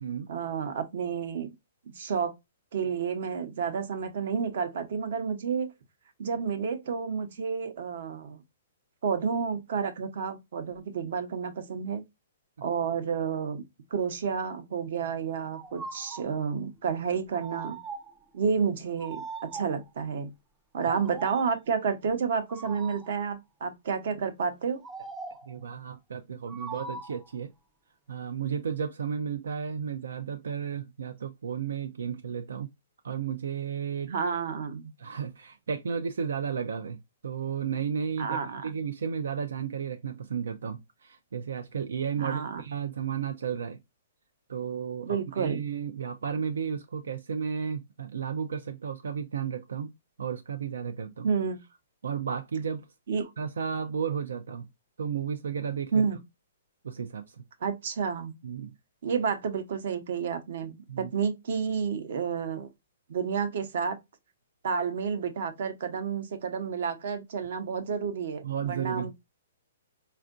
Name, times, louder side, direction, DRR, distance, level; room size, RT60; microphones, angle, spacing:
voice 1, 0.3-1.5 2.0-2.3 2.7-5.7 6.2-8.4 9.0-12.0 12.6-13.6 13.9-17.8 18.3-20.3 20.7-24.8 34.1-34.9 38.2-38.7 42.2-42.6 45.0-45.6 51.2-51.6 53.1-53.2 55.9-56.2 57.6-58.3 59.0-62.7 63.1-64.0 64.6-68.4 68.7-69.1, right 6 dB, 60° right, 0.8 m, -30 dB
sound 1, 15.5-16.3 17.3-18.2 19.0-19.9 20.8-21.6 22.5-23.2 24.8-25.5 26.5-27.3, right 4 dB, 10° right, 0.4 m, -41 dB
voice 2, 25.5-27.5 28.1-32.7 33.0-34.1 35.0-43.8 44.5-49.9 50.2-51.3 52.0-52.9 53.2-54.7 55.0-56.0 56.8-57.4 58.4-58.7 60.9-61.1 68.4-69.1, right 7 dB, 85° right, 0.4 m, -33 dB
4.4 x 2.4 x 2.4 m
hypercardioid pair, 160°, 0 cm